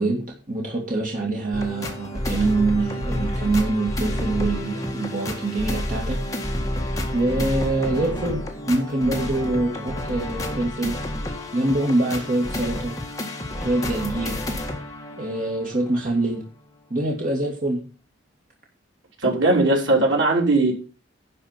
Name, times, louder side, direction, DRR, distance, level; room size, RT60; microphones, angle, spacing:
voice 1, 0.0-6.2 7.1-11.0 11.5-12.9 13.6-14.4 15.2-16.4 16.9-17.8, right 2 dB, 45° right, -1 dB, 2.3 m, -24 dB
sound 1, 1.5-16.1 16.6-16.7, left 1 dB, 20° left, 1.7 m, -29 dB
voice 2, 19.2-20.7, right 2 dB, 80° right, -1 dB, 3.7 m, -19 dB
11.0 x 5.0 x 7.4 m, 0.37 s
head